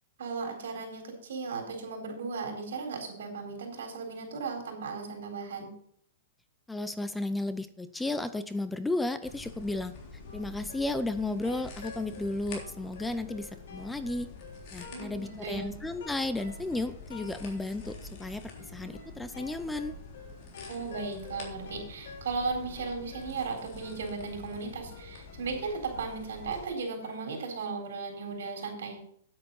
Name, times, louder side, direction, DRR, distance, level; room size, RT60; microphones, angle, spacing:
voice 1, 0.2-5.7 14.9-15.7 20.7-29.0, right 4 dB, 80° right, 3 dB, 4.0 m, -36 dB
voice 2, 6.7-9.9 10.3-14.3 14.7-20.0, left 2 dB, 5° left, 12 dB, 0.6 m, -33 dB
sound 1, 9.2-26.7, left 3 dB, 45° left, 3.5 m, -47 dB
sound 2, 10.3-27.6, left 4 dB, 75° left, 5.0 m, -50 dB
9.5 x 8.6 x 5.4 m, 0.64 s
hypercardioid pair, 145°, 0 cm